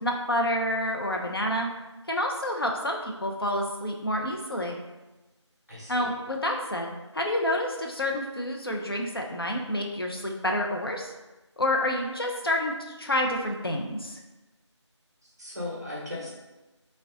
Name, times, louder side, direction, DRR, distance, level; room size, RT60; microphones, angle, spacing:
voice 1, 0.0-1.7 2.1-4.8 5.9-11.1 11.6-14.2, left 1 dB, 50° left, 1 dB, 0.4 m, -28 dB
voice 2, 5.7-6.1 15.2-16.3, left 2 dB, 35° right, -5 dB, 0.8 m, -37 dB
3.5 x 2.0 x 2.6 m, 1.1 s
figure-of-eight pair, 175°, 15 cm